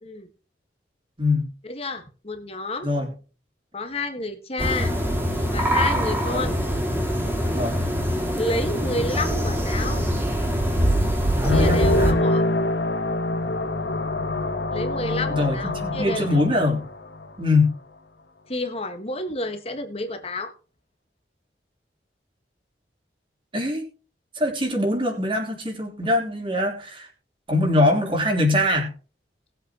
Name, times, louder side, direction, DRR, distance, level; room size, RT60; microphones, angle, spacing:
voice 1, 1.6-2.9 3.7-4.9 5.5-6.6 8.4-10.0 11.4-12.4 14.7-16.3 18.5-20.5, left 2 dB, 35° left, 6 dB, 1.7 m, -30 dB
sound 1, 4.6-12.1, equal, 10° right, 2.5 m, -23 dB
voice 2, 11.3-12.2 15.3-16.8 17.4-17.7 23.5-23.9 24.3-27.1 27.5-28.9, left 2 dB, 30° right, 1 dB, 4.0 m, -23 dB
sound 2, 11.4-17.6, left 2 dB, 90° left, 1.9 m, -25 dB
20.0 x 8.0 x 3.1 m, 0.35 s
head